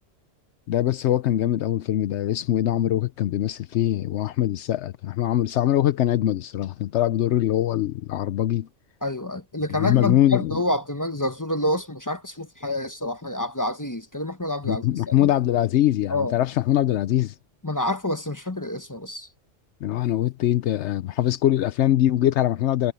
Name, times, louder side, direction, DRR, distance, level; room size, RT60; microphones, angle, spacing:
voice 1, 0.7-8.7 9.7-10.6 14.7-17.3 19.8-22.9, left 12 dB, 80° left, 0.9 m, -22 dB
voice 2, 9.0-15.3 16.1-16.4 17.6-19.3, left 1 dB, 15° left, 1.1 m, -28 dB
omnidirectional pair, 1.2 m